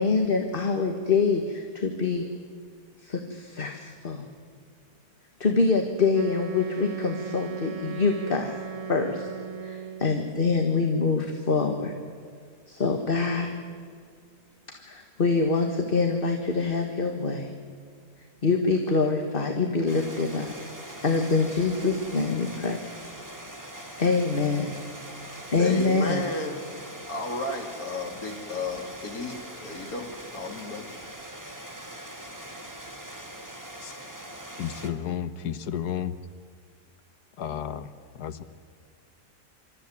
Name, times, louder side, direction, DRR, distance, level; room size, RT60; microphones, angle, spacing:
voice 1, 0.0-2.2 3.0-4.3 5.4-9.3 9.6-11.9 12.7-13.5 14.8-17.5 18.4-20.5 21.0-22.8 24.0-24.7 25.5-26.2, left 4 dB, 35° left, 4 dB, 1.8 m, -25 dB
Wind instrument woodwind instrument, 6.1-10.3, right 6 dB, 35° right, 0.6 m, -37 dB
sound 1, 19.9-34.9, right 1 dB, 10° right, 2.2 m, -42 dB
voice 2, 25.6-26.6 27.1-30.9, left 2 dB, 65° left, 2 dB, 3.3 m, -33 dB
voice 3, 34.6-36.1 37.4-38.4, left 9 dB, 90° left, 12 dB, 1.6 m, -32 dB
27.0 x 14.0 x 9.6 m, 2.2 s
omnidirectional pair, 1.7 m